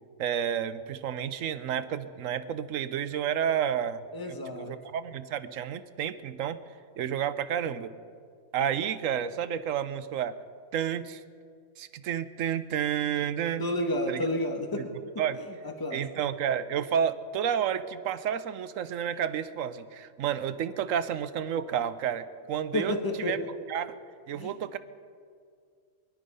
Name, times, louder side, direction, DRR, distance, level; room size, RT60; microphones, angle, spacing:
voice 1, 0.2-6.6 7.0-7.9 8.5-10.4 10.7-11.2 11.8-13.7 14.1-14.2 15.2-15.4 15.9-23.4 23.7-24.0 24.3-24.8, right 9 dB, 85° right, 13 dB, 1.1 m, -30 dB
voice 2, 4.1-4.7 13.6-14.9 15.6-16.0 22.7-23.3 24.3-24.5, left 1 dB, 15° left, 3 dB, 1.4 m, -30 dB
21.5 x 11.5 x 5.5 m, 2.2 s
omnidirectional pair, 1.3 m